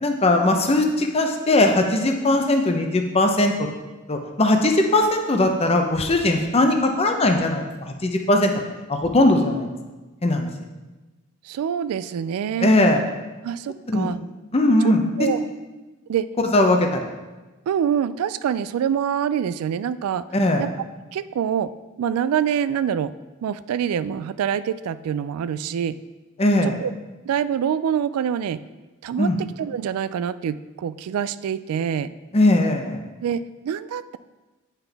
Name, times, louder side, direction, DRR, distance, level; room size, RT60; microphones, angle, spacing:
voice 1, 0.0-3.7 4.1-8.5 8.9-9.7 10.2-10.5 12.6-13.0 13.9-14.2 14.5-15.3 16.4-17.1 20.3-20.7 26.4-26.8 29.2-29.4 32.3-33.0, left 1 dB, 30° left, 4 dB, 0.6 m, -19 dB
voice 2, 11.4-12.7 13.4-14.2 15.2-15.4 16.1-16.3 17.7-20.3 20.6-20.7 21.1-21.7 22.0-23.1 23.4-26.0 26.8-26.9 27.2-28.6 29.0-32.1 33.2-34.2, right 8 dB, 85° right, 16 dB, 0.3 m, -25 dB
8.9 x 5.7 x 3.4 m, 1.2 s
head